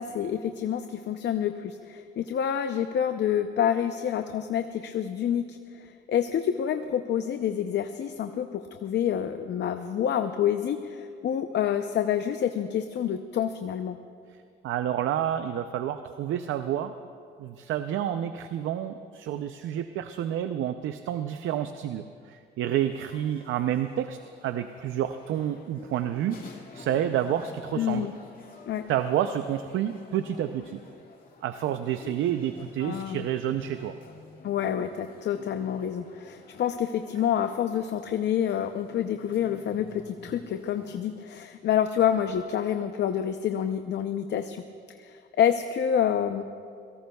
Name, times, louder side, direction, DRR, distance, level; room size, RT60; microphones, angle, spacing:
voice 1, 0.0-5.8 6.1-14.0 27.8-28.1 28.7-28.8 32.8-33.3 34.4-44.6 45.0-46.4, left 9 dB, 60° left, 7 dB, 0.6 m, -28 dB
voice 2, 14.6-16.9 17.4-26.4 26.7-28.1 28.9-30.8 31.4-34.0, right 10 dB, 80° right, 9 dB, 0.5 m, -29 dB
sound 1, 22.7-41.0, left 4 dB, 45° left, 2.2 m, -50 dB
27.5 x 18.0 x 2.3 m, 2.3 s
cardioid pair, 90°, 20 cm